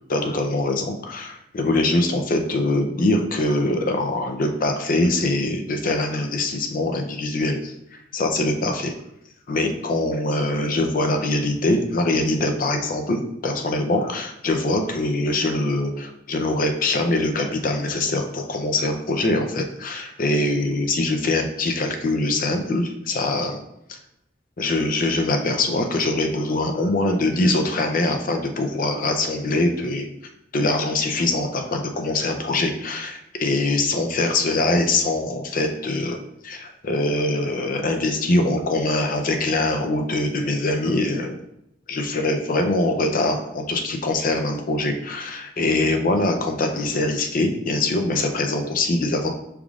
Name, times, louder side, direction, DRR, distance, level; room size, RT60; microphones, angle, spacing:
voice 1, 0.1-7.7 8.1-9.0 9.5-23.6 23.9-24.0 24.6-30.1 30.5-36.2 36.4-41.3 41.9-49.3, left 2 dB, 50° left, 5 dB, 0.5 m, -23 dB
6.0 x 3.5 x 2.4 m, 0.82 s
head